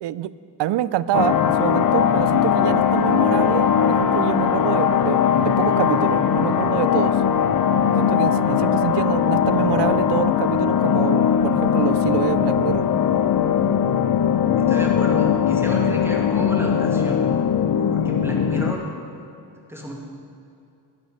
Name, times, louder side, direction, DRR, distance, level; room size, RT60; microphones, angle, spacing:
voice 1, 0.0-0.3 0.6-7.2 8.0-12.9, right 12 dB, 80° right, 17 dB, 0.5 m, -26 dB
sound 1, 1.1-18.7, left 8 dB, 50° left, 0.7 m, -20 dB
voice 2, 14.6-17.2 17.9-18.9 19.7-19.9, equal, 5° right, -2 dB, 2.0 m, -31 dB
12.0 x 10.5 x 5.2 m, 2.6 s
cardioid pair, 110°, 41 cm